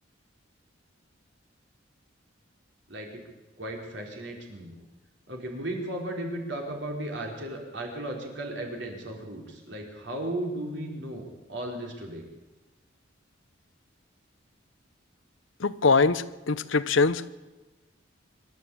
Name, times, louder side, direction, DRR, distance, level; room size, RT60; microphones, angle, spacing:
voice 1, 2.9-3.2 3.6-4.7 5.3-12.2, right 1 dB, 65° right, 1 dB, 4.5 m, -35 dB
voice 2, 15.6-17.2, left 4 dB, 80° left, 14 dB, 0.9 m, -23 dB
24.5 x 12.5 x 8.7 m, 1.1 s
head